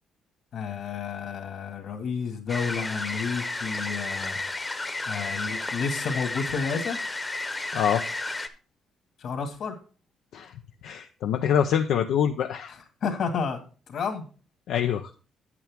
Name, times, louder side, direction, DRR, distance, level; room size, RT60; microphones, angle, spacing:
voice 1, 0.5-4.4 5.0-7.0 9.2-9.8 12.7-14.3, left 5 dB, 65° left, 5 dB, 2.1 m, -31 dB
sound 1, 2.5-8.5, left 2 dB, 20° left, 0.9 m, -32 dB
voice 2, 7.7-8.0 10.3-10.5 10.8-12.7 14.7-15.1, left 9 dB, 85° left, 5 dB, 0.6 m, -25 dB
9.1 x 8.5 x 3.5 m, 0.36 s
cardioid pair, 110°, 0 cm